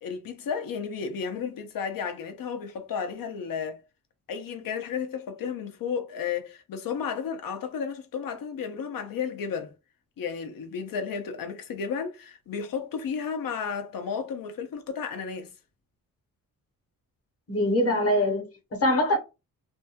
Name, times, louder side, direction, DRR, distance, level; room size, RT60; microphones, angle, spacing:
voice 1, 0.0-3.8 4.3-9.7 10.2-15.5, left 6 dB, 75° left, 0.7 m, -33 dB
voice 2, 17.5-19.2, left 1 dB, 45° left, 1.0 m, -23 dB
2.7 x 2.3 x 2.8 m
cardioid pair, 120°, 34 cm